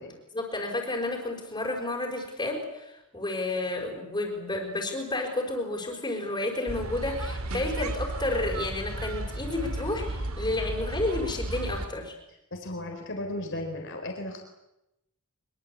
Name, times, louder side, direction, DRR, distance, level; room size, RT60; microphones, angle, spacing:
voice 1, 0.3-12.1, left 2 dB, 20° left, 0 dB, 5.2 m, -31 dB
sound 1, 6.7-11.9, right 1 dB, 70° right, 2.4 m, -34 dB
voice 2, 12.5-14.4, left 1 dB, 55° left, 3 dB, 4.3 m, -35 dB
24.0 x 24.0 x 8.5 m, 0.88 s
head